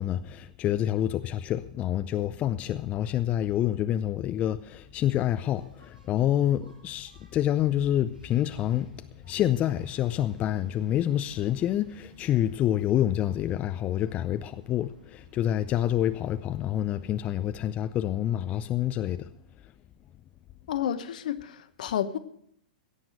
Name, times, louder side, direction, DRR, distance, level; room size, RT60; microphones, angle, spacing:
voice 1, 0.0-19.3, left 11 dB, 30° left, 0.5 m, -27 dB
Engine, 4.8-17.8, right 2 dB, 85° right, 4.7 m, -56 dB
voice 2, 20.7-22.2, left 10 dB, 60° left, 1.0 m, -30 dB
16.5 x 7.2 x 8.0 m
hypercardioid pair, 110°, 5 cm